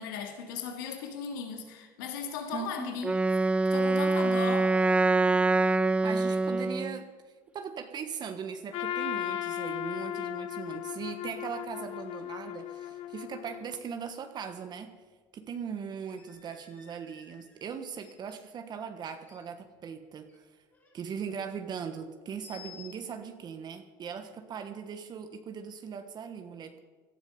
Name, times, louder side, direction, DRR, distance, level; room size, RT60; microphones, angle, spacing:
voice 1, 0.0-3.1 3.7-4.7, left 6 dB, 90° left, 3 dB, 2.2 m, -37 dB
voice 2, 2.5-3.0 6.0-14.9 15.3-20.4 20.9-26.8, right 7 dB, 45° right, 7 dB, 1.3 m, -39 dB
Wind instrument woodwind instrument, 3.0-7.0, right 3 dB, 10° right, 0.4 m, -25 dB
Trumpet, 8.7-13.8, left 12 dB, 65° left, 0.8 m, -36 dB
sound 1, 11.5-11.6 12.0-12.1 12.7-13.0 13.4-13.5 15.0-15.1 15.8-18.5 19.1-20.4 20.6-21.1 22.4-23.0, left 8 dB, 20° left, 4.6 m, -55 dB
17.5 x 12.5 x 5.3 m, 1.4 s
supercardioid pair, 95°, 10 cm